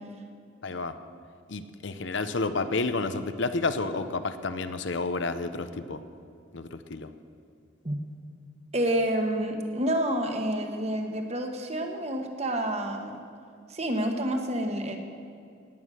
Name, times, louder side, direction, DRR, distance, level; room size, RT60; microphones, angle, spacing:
voice 1, 0.6-1.0 1.5-6.0 6.5-7.1, left 3 dB, 65° left, 10 dB, 0.7 m, -30 dB
voice 2, 8.7-13.2 13.7-15.0, right 1 dB, 30° right, 4 dB, 1.3 m, -28 dB
17.5 x 9.3 x 6.4 m, 2.3 s
head